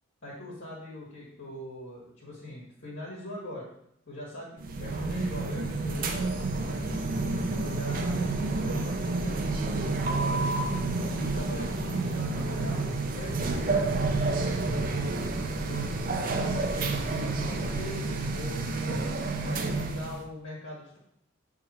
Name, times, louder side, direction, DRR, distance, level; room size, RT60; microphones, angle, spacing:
voice 1, 0.2-3.7 4.1-7.0 7.5-10.5 11.1-12.8 13.1-14.7 15.6-18.1 18.3-21.0, left 1 dB, 65° left, -7 dB, 1.8 m, -42 dB
sound 1, 4.6-20.2, right 3 dB, 45° right, 0.6 m, -29 dB
7.2 x 3.6 x 4.3 m, 0.73 s
head